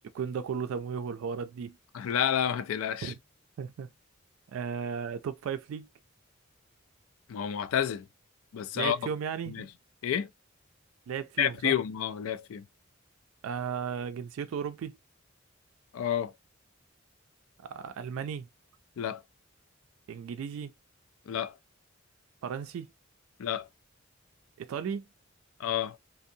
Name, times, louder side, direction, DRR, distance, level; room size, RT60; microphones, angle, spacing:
voice 1, 0.1-1.8 3.0-3.2 3.6-3.9 4.5-5.9 8.7-9.7 11.1-11.8 13.4-15.0 17.6-18.5 20.1-20.7 22.4-22.9 24.6-25.0, right 7 dB, 80° right, 0.3 m, -35 dB
voice 2, 1.9-3.1 7.3-8.0 8.5-9.0 9.5-9.7 10.0-10.3 11.4-12.6 15.9-16.3 19.0-19.2 21.3-21.5 23.4-23.7 25.6-26.0, left 9 dB, 80° left, 0.3 m, -29 dB
2.6 x 2.0 x 2.6 m
head